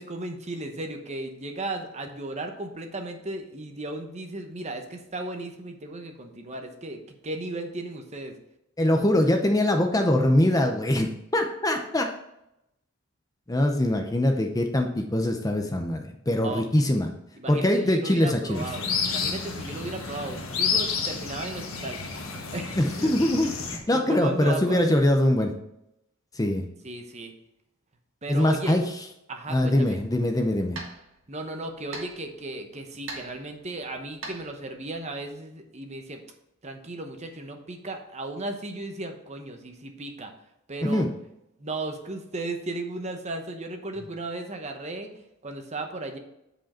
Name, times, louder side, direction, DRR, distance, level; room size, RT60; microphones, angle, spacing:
voice 1, 0.0-8.3 16.4-16.6 17.4-22.0 22.5-23.1 23.9-24.8 26.8-27.3 28.2-28.8 29.3-30.0 31.3-36.2 36.6-40.3 40.7-41.0 41.6-46.2, right 2 dB, 30° right, 5 dB, 0.9 m, -35 dB
voice 2, 8.8-12.1 13.5-17.1 17.5-18.6 22.8-25.5 26.3-26.6 28.3-28.8 29.5-30.8 40.8-41.1, left 1 dB, 15° left, 4 dB, 0.6 m, -23 dB
sound 1, 18.5-23.8, left 5 dB, 70° left, 1.4 m, -30 dB
sound 2, 30.0-35.3, right 3 dB, 60° right, 1.7 m, -44 dB
8.3 x 5.1 x 4.3 m, 0.84 s
head